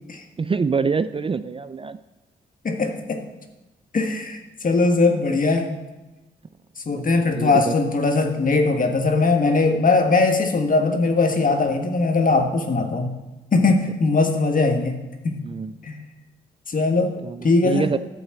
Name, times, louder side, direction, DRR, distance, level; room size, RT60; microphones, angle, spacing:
voice 1, 0.4-2.0 7.0-7.7 13.7-13.8 15.4-15.7 17.2-18.0, right 5 dB, 30° right, 13 dB, 0.4 m, -25 dB
voice 2, 2.6-3.2 3.9-5.8 6.8-13.2 13.5-15.4 15.8-16.0 16.7-17.2 17.4-18.0, left 3 dB, 45° left, 5 dB, 1.5 m, -20 dB
10.5 x 4.1 x 7.5 m, 1.1 s
supercardioid pair, 50°, 19 cm